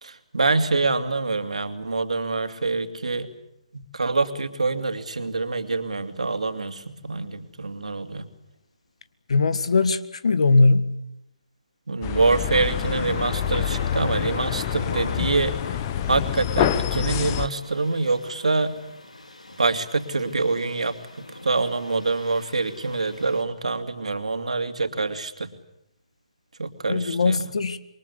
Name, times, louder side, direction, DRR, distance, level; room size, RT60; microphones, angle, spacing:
voice 1, 0.0-3.3 3.7-8.3 11.9-15.8 16.1-18.7 19.6-25.5 26.6-27.4, right 3 dB, 75° right, 8 dB, 2.8 m, -25 dB
voice 2, 9.3-10.9 26.9-27.8, left 3 dB, 65° left, 13 dB, 1.9 m, -20 dB
sound 1, 12.0-17.5, left 10 dB, 30° left, 1.0 m, -26 dB
Thunder, 12.5-23.4, left 2 dB, 85° left, 3.6 m, -40 dB
27.0 x 23.0 x 8.4 m, 0.83 s
figure-of-eight pair, 145°, 4 cm